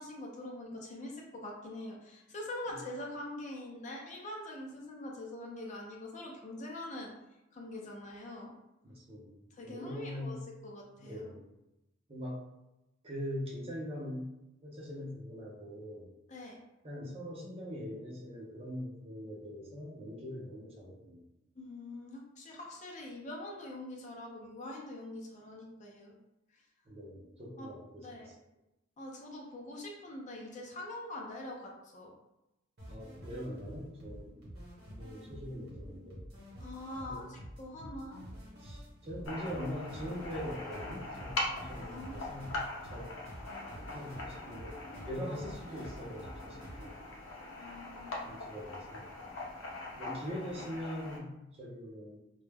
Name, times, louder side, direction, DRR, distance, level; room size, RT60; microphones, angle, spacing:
voice 1, 0.0-7.1 7.5-8.5 9.5-11.3 16.3-16.6 21.6-26.1 26.5-26.6 27.6-27.7 28.0-28.3 29.0-32.1 36.6-38.2 41.8-42.6 47.6-48.4 50.1-50.2 50.6-50.7, left 1 dB, 35° left, -1 dB, 0.4 m, -44 dB
voice 2, 8.8-10.4 11.0-11.4 12.1-12.4 13.0-14.3 14.6-16.1 16.8-21.2 26.9-28.3 32.9-34.4 35.0-36.2 37.0-37.3 37.7-38.1 38.6-42.6 42.9-43.2 43.9-44.7 45.0-47.0 48.2-49.0 49.9-52.2, equal, 30° right, -3 dB, 0.6 m, -42 dB
sound 1, 32.8-46.9, equal, 55° right, 0.9 m, -49 dB
sound 2, 39.3-51.2, left 2 dB, 85° left, 0.6 m, -42 dB
2.2 x 2.0 x 3.3 m, 0.94 s
head